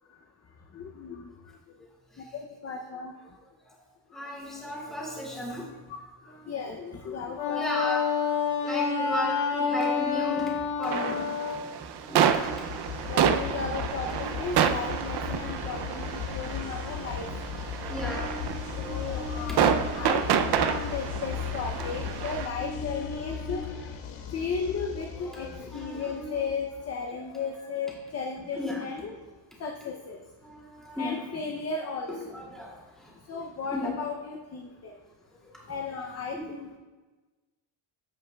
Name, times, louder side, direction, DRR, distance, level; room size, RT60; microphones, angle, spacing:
voice 1, 0.7-1.3 2.2-3.1 4.1-4.2 6.5-7.6 8.7-9.1 11.1-11.2 12.9-17.3 17.6-23.6 24.3-25.5 25.7-29.1 29.6-30.2 31.0-32.4 33.3-35.0 35.7-36.7, left 5 dB, 30° left, 2 dB, 0.6 m, -35 dB
voice 2, 4.1-5.7 6.2-6.5 7.6-8.3 8.6-11.6 11.9-12.9 14.4-14.5 16.1-16.2 17.2-17.3 17.6-20.2 22.5-23.9 24.1-24.3 25.2-26.3 28.6-28.8 30.4-31.2 32.3-33.1 33.7-33.9 36.3-36.4, left 1 dB, ahead, -5 dB, 2.4 m, -36 dB
Wind instrument woodwind instrument, 7.3-11.6, left 5 dB, 60° left, 2.0 m, -28 dB
sound 1, 10.8-22.5, right 8 dB, 55° right, 0.5 m, -29 dB
sound 2, 12.3-27.0, left 8 dB, 80° left, 1.2 m, -37 dB
15.0 x 5.3 x 2.3 m, 1.3 s
cardioid pair, 140°, 50 cm